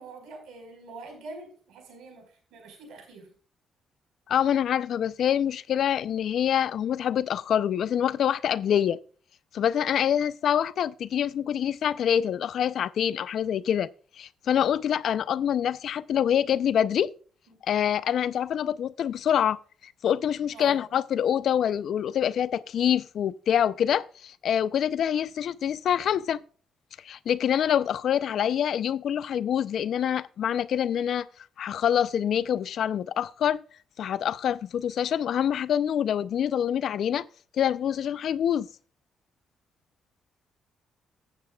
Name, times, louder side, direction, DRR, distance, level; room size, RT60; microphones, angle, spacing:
voice 1, 0.0-3.3 17.5-17.6 20.5-20.8, right 3 dB, 80° right, 4.8 m, -44 dB
voice 2, 4.3-9.0 9.5-13.9 14.2-17.1 17.6-26.4 27.0-31.3 31.6-33.6 34.0-37.3 37.6-38.7, left 9 dB, 65° left, 0.5 m, -26 dB
14.5 x 8.3 x 2.3 m
cardioid pair, 90°, 0 cm